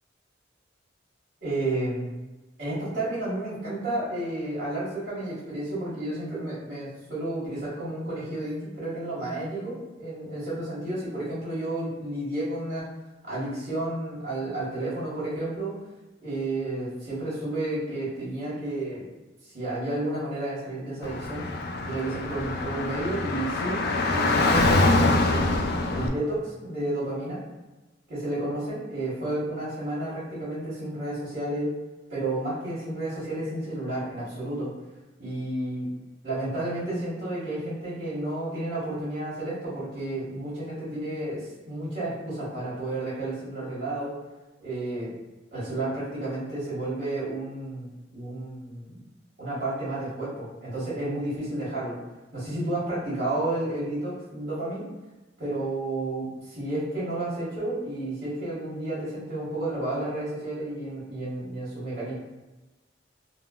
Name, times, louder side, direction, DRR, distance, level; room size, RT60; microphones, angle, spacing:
voice 1, 1.4-2.1 2.6-12.8 13.2-15.7 16.2-19.0 19.4-21.4 21.8-25.5 25.9-27.4 28.1-31.7 32.1-34.7 35.2-35.9 36.2-41.4 41.6-44.1 44.6-45.1 45.5-49.0 49.4-52.0 52.3-54.8 55.4-62.1, right 1 dB, 60° right, -12 dB, 1.3 m, -31 dB
Car / Traffic noise roadway noise, 21.0-26.1, left 2 dB, 55° left, 0.3 m, -24 dB
3.6 x 2.2 x 2.3 m, 1.1 s
head